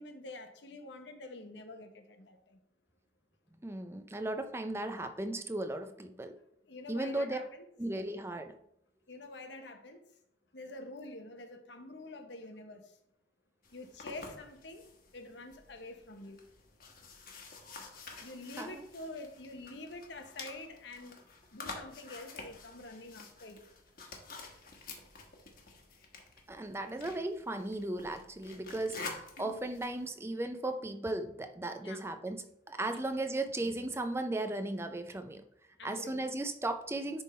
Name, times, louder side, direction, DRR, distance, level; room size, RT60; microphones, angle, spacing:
voice 1, 0.0-2.6 6.7-7.7 8.1-8.2 9.1-10.0 10.5-12.9 13.7-14.8 15.1-16.4 18.2-21.2 21.5-23.6 29.4-29.6 31.8-32.0 35.8-36.3, left 2 dB, 70° left, 6 dB, 1.0 m, -47 dB
voice 2, 3.6-6.4 6.9-7.4 7.8-8.5 18.6-18.8 26.5-35.4 35.8-37.2, right 2 dB, 15° right, 8 dB, 0.5 m, -36 dB
sound 1, 13.6-30.1, left 3 dB, 50° left, 1.3 m, -49 dB
10.5 x 3.6 x 4.2 m, 0.76 s
head